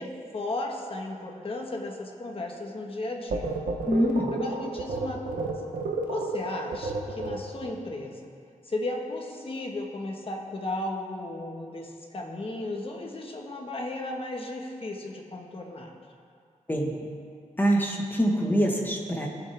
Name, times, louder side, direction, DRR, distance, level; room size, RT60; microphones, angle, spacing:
voice 1, 0.0-3.5 4.3-5.5 6.1-8.3 8.6-15.9, left 2 dB, 45° left, 1 dB, 1.5 m, -35 dB
sound 1, 3.3-7.7, right 2 dB, 90° right, 1.1 m, -31 dB
voice 2, 3.9-4.4 16.7-16.9 17.6-19.3, equal, 15° left, 0 dB, 1.6 m, -24 dB
19.0 x 7.4 x 3.5 m, 2.3 s
wide cardioid pair, 105°, 13 cm